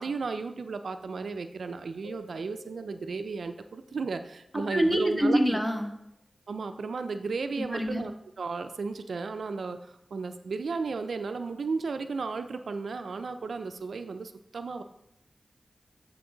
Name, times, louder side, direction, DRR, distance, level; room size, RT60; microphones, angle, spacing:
voice 1, 0.0-5.6 6.5-14.8, right 4 dB, 85° right, 9 dB, 0.4 m, -34 dB
sound 1, 2.0-5.3, left 4 dB, 75° left, 1.8 m, -55 dB
voice 2, 4.5-5.9 7.6-8.0, equal, 5° left, 3 dB, 1.2 m, -26 dB
9.2 x 4.6 x 3.8 m, 0.80 s
cardioid pair, 45°, 0 cm